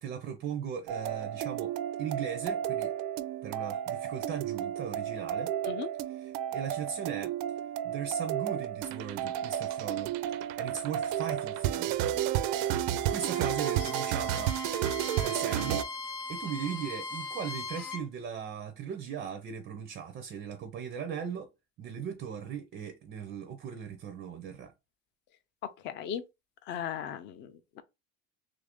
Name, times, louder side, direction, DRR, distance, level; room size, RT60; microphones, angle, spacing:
voice 1, 0.0-1.7 2.0-3.0 3.4-5.5 6.1-7.3 7.8-10.1 10.6-11.9 13.1-14.6 15.2-15.9 16.3-21.5 21.8-24.7, right 7 dB, 35° right, 0.4 m, -38 dB
sound 1, 0.9-15.8, right 11 dB, 90° right, 0.5 m, -32 dB
Bowed string instrument, 13.0-18.1, left 3 dB, 75° left, 0.8 m, -40 dB
voice 2, 25.8-26.2 26.7-27.5 27.8-27.9, left 9 dB, 35° left, 0.4 m, -36 dB
3.1 x 2.5 x 3.4 m
cardioid pair, 175°, 31 cm